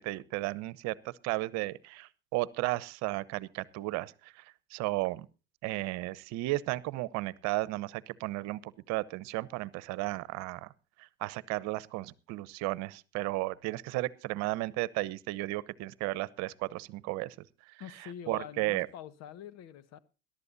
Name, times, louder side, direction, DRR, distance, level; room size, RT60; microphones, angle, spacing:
voice 1, 0.0-4.4 4.7-5.3 5.6-10.7 11.0-17.3 18.3-18.9, right 20 dB, 65° right, 1.0 m, -34 dB
voice 2, 17.8-20.0, left 10 dB, 60° left, 1.5 m, -45 dB
21.5 x 12.0 x 2.7 m
hypercardioid pair, 75°, 30 cm